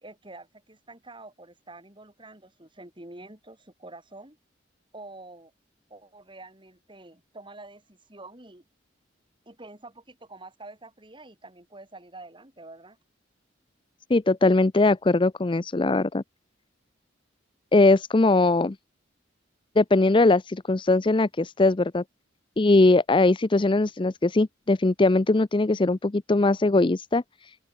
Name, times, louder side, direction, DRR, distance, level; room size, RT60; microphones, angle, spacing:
voice 1, 0.0-4.4 4.9-5.5 5.9-8.6 9.5-13.0, right 2 dB, 25° right, 5.2 m, -47 dB
voice 2, 14.1-16.2 17.7-18.8 19.8-22.0 22.6-27.2, left 2 dB, 25° left, 0.5 m, -20 dB
open air
head